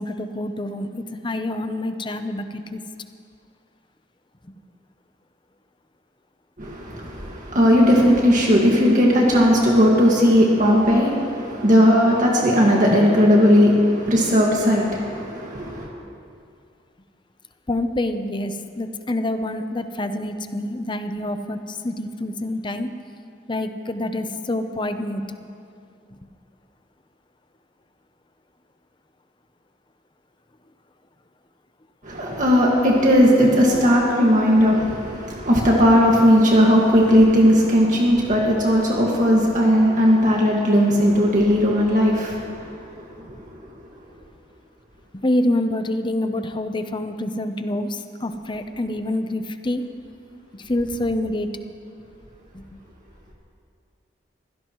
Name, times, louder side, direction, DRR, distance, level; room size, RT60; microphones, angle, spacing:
voice 1, 0.0-2.8 17.7-22.9 23.5-25.4 45.1-49.9 50.6-51.5 52.5-52.6, left 1 dB, 25° left, 9 dB, 0.7 m, -26 dB
voice 2, 6.6-15.9 32.0-42.8 43.2-43.4, equal, 45° right, -3 dB, 1.9 m, -17 dB
23.5 x 16.5 x 3.1 m, 2.4 s
head